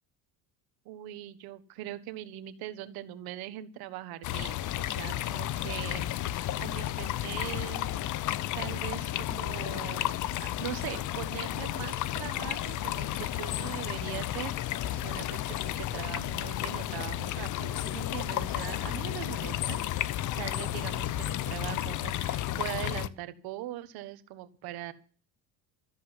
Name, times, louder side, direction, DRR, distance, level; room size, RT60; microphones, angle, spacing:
voice 1, 0.8-8.0 8.5-24.9, right 14 dB, 75° right, 12 dB, 1.5 m, -41 dB
sound 1, 4.2-23.1, left 13 dB, 55° left, 0.8 m, -32 dB
13.5 x 7.7 x 9.8 m, 0.41 s
cardioid pair, 125°, 37 cm